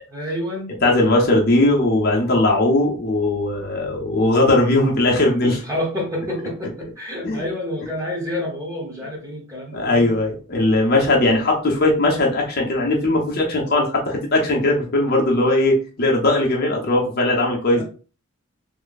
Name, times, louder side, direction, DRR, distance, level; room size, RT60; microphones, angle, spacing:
voice 1, 0.1-0.7 5.6-10.1 17.7-17.8, left 1 dB, 15° right, -2 dB, 1.1 m, -28 dB
voice 2, 0.8-5.6 7.2-7.4 9.7-17.8, left 2 dB, 45° left, -1 dB, 0.8 m, -19 dB
3.2 x 2.2 x 3.9 m, 0.38 s
head